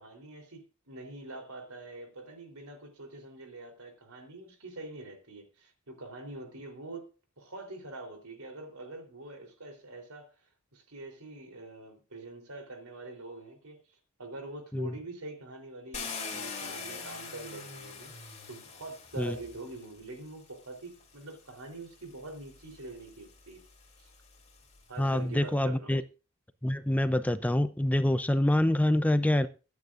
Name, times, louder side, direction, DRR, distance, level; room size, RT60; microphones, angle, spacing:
voice 1, 0.0-7.1 7.4-10.3 10.7-18.1 18.5-23.6 24.0-24.1 24.9-26.0, right 2 dB, 80° right, 3.6 m, -45 dB
Car, 15.9-20.0 21.0-21.1 21.6-24.9, left 5 dB, 30° left, 3.1 m, -43 dB
voice 2, 25.0-26.0 26.6-29.5, left 1 dB, 5° left, 0.5 m, -26 dB
23.5 x 9.5 x 2.5 m
head